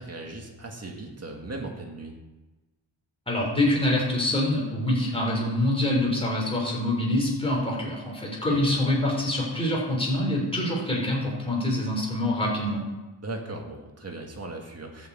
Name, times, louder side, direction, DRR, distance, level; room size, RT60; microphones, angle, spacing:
voice 1, 0.0-2.2 8.5-8.6 13.2-15.1, right 2 dB, 30° right, 1 dB, 2.0 m, -38 dB
voice 2, 3.3-12.8, left 1 dB, 10° left, -3 dB, 3.7 m, -25 dB
11.5 x 6.5 x 8.1 m, 1.1 s
wide cardioid pair, 155°, 46 cm